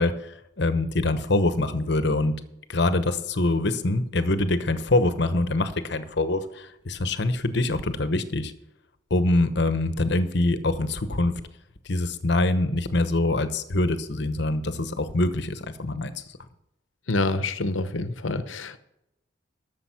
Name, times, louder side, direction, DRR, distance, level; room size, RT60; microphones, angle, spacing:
voice 1, 0.0-2.3 2.7-8.5 9.1-11.3 11.8-16.1, left 2 dB, 60° left, 11 dB, 1.0 m, -24 dB
voice 2, 17.1-18.8, left 2 dB, 90° left, 12 dB, 1.0 m, -27 dB
12.5 x 6.9 x 5.7 m, 0.85 s
head